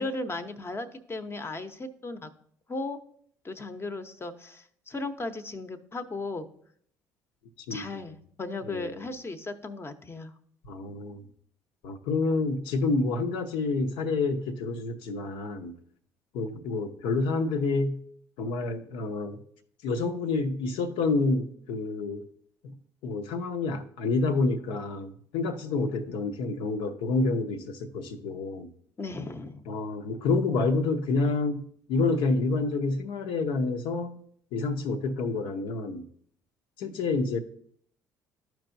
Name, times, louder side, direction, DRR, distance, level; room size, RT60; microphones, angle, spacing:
voice 1, 0.0-2.3 2.7-3.0 3.4-6.5 7.7-10.3 29.0-29.6, left 2 dB, 25° left, 0.8 m, -36 dB
voice 2, 7.7-8.0 8.6-9.0 10.7-11.3 11.8-15.7 16.3-18.0 18.4-19.4 19.8-22.2 22.6-22.7 23.0-28.7 29.7-31.6 31.9-34.2 34.5-36.1 36.8-37.4, left 3 dB, 70° left, 0.8 m, -28 dB
12.5 x 4.6 x 2.7 m
hypercardioid pair, 60°, 9 cm